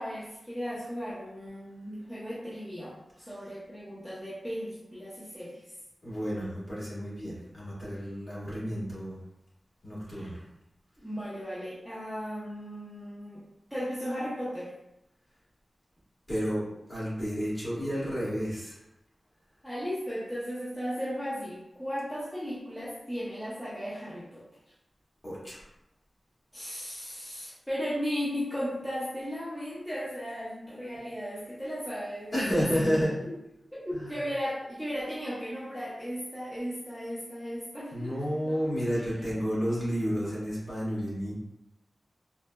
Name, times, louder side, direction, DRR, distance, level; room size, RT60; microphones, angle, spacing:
voice 1, 0.0-5.6 10.1-10.3 11.0-13.4 13.7-14.7 19.6-24.4 26.5-32.7 33.7-39.2, equal, ahead, -10 dB, 0.7 m, -36 dB
voice 2, 6.0-9.2 9.8-10.4 16.3-18.8 25.2-25.6 32.3-33.2 33.9-34.2 37.9-41.3, equal, 30° left, -9 dB, 1.4 m, -31 dB
3.9 x 2.0 x 2.2 m, 0.87 s
wide cardioid pair, 100°, 0 cm